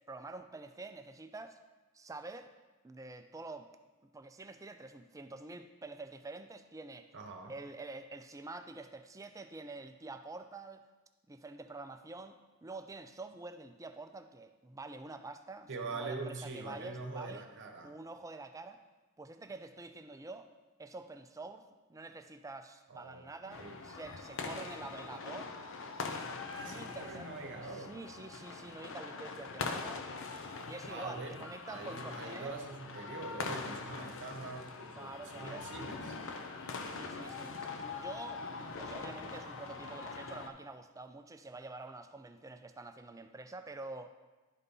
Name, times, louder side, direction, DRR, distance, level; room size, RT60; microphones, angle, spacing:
voice 1, 0.1-1.6 1.9-2.5 2.8-3.7 4.0-7.1 7.5-10.8 11.3-17.4 17.8-18.8 19.2-20.5 20.8-21.6 21.9-25.5 26.6-30.1 30.6-32.5 35.0-35.7 36.8-38.4 38.8-44.1, right 3 dB, 15° right, 8 dB, 0.4 m, -47 dB
voice 2, 7.1-7.5 15.7-17.9 22.9-23.8 26.5-28.0 30.9-36.2, right 3 dB, 55° right, 4 dB, 0.9 m, -44 dB
sound 1, 23.5-40.5, left 4 dB, 60° left, 0.7 m, -43 dB
11.0 x 4.2 x 5.3 m, 1.2 s
head